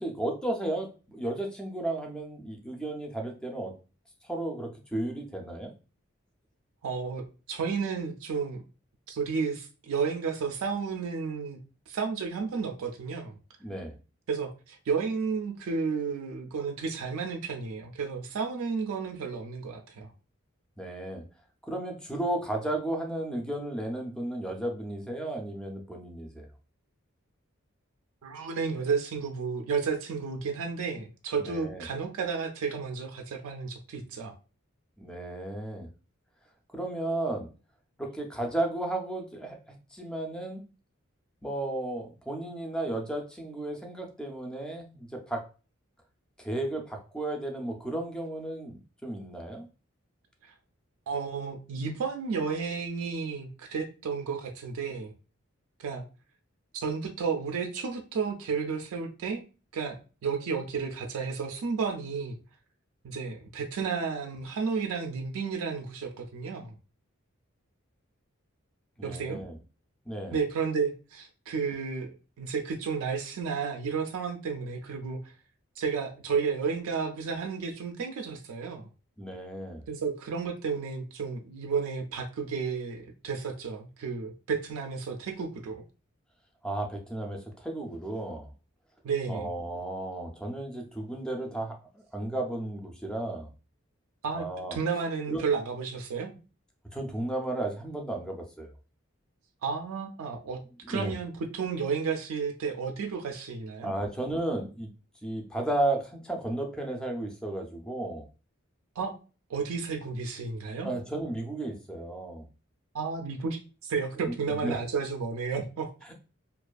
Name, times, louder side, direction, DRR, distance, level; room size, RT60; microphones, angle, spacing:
voice 1, 0.0-3.7 4.2-5.7 13.6-14.0 20.8-21.3 21.6-26.5 31.4-31.9 35.0-35.9 36.7-37.5 38.0-40.7 41.4-45.5 46.4-49.7 69.0-69.6 70.1-70.4 79.2-79.9 86.6-88.5 89.3-93.5 94.3-94.8 95.3-95.4 96.9-98.7 100.8-101.1 103.8-104.9 105.2-108.3 110.8-112.5 114.2-114.8 116.0-116.1, right 1 dB, 5° left, 2 dB, 0.3 m, -34 dB
voice 2, 6.8-8.6 9.1-11.6 11.9-13.4 14.3-20.1 28.2-34.3 51.1-55.1 55.8-56.0 56.7-59.4 59.7-62.4 63.0-66.7 69.0-69.4 70.3-72.1 72.4-75.3 75.8-78.9 79.9-85.8 89.0-89.5 94.2-94.5 94.7-96.4 99.6-100.6 100.9-103.9 109.0-109.1 109.5-110.9 112.9-115.9, right 5 dB, 85° right, 4 dB, 0.3 m, -32 dB
2.4 x 2.3 x 2.2 m, 0.34 s
head